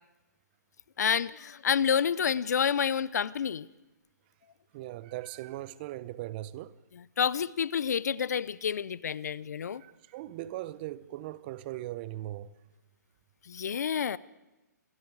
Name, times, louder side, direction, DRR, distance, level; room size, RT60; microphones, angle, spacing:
voice 1, 1.0-3.7 7.2-9.8 13.5-14.2, left 7 dB, 65° left, 0.8 m, -29 dB
voice 2, 4.7-6.8 9.7-12.5, right 15 dB, 30° right, 0.9 m, -39 dB
28.5 x 22.5 x 4.9 m
hypercardioid pair, 145°, 10 cm